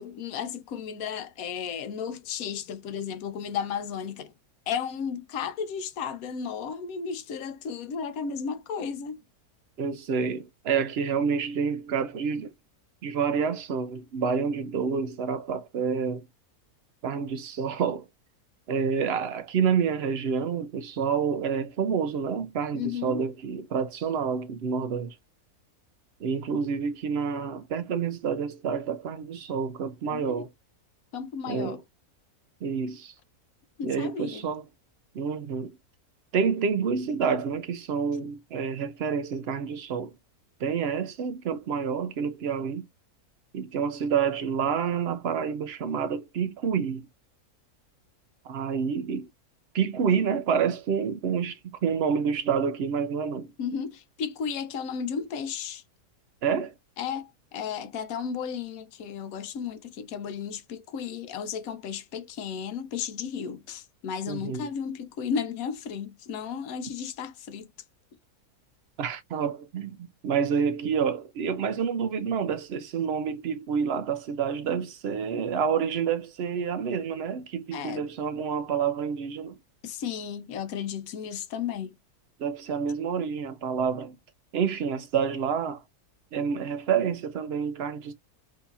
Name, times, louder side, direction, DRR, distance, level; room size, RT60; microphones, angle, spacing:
voice 1, 0.0-4.3 4.7-9.2 22.7-23.2 30.1-30.4 31.1-31.8 33.8-34.5 53.6-55.8 57.0-67.7 77.7-78.1 79.8-81.9, left 7 dB, 70° left, 1.1 m, -34 dB
voice 2, 9.8-12.5 13.0-16.3 17.0-18.1 18.7-25.1 26.2-30.5 31.5-31.8 32.6-33.1 33.8-34.6 35.1-35.7 36.3-40.1 40.6-42.9 43.5-47.1 48.5-49.3 49.7-53.5 56.4-56.7 64.3-64.7 69.0-79.6 82.4-84.1 84.5-85.8 86.3-88.1, right 6 dB, 70° right, 0.6 m, -28 dB
3.8 x 2.7 x 2.4 m
omnidirectional pair, 1.6 m